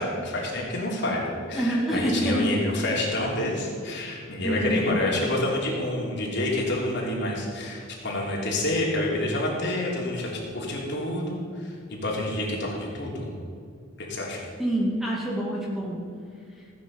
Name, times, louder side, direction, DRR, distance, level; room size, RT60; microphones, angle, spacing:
voice 1, 0.0-13.3 14.0-14.4, left 1 dB, 60° left, -3 dB, 3.1 m, -28 dB
voice 2, 1.5-2.5 4.4-5.3 14.6-16.0, equal, ahead, -4 dB, 2.1 m, -26 dB
15.5 x 9.3 x 5.4 m, 2.3 s
head